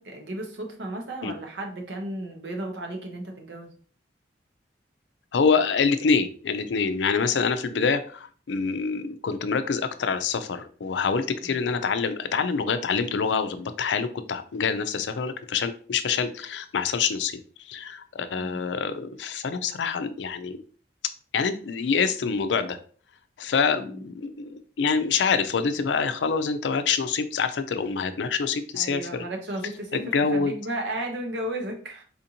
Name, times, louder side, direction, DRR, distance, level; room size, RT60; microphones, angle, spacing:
voice 1, 0.0-3.7 11.4-11.6 18.3-18.6 23.8-24.0 28.7-32.0, right 1 dB, 80° right, 2 dB, 0.9 m, -34 dB
voice 2, 5.3-17.4 17.6-20.6 21.3-22.8 23.4-29.2 29.9-30.6, left 5 dB, 90° left, 11 dB, 0.4 m, -26 dB
4.2 x 2.6 x 2.8 m, 0.43 s
head